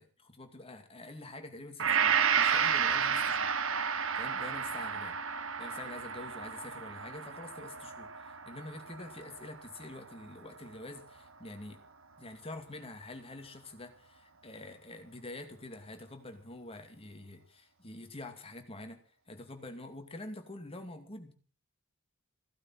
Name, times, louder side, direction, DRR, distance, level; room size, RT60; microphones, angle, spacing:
voice 1, 0.0-3.5 4.1-5.2 5.6-11.8 12.2-19.0 19.3-21.4, left 2 dB, 25° left, 6 dB, 2.4 m, -46 dB
Gong, 1.8-10.1 10.6-10.7, right 7 dB, 65° right, 1.2 m, -31 dB
16.0 x 12.0 x 5.8 m, 0.42 s
head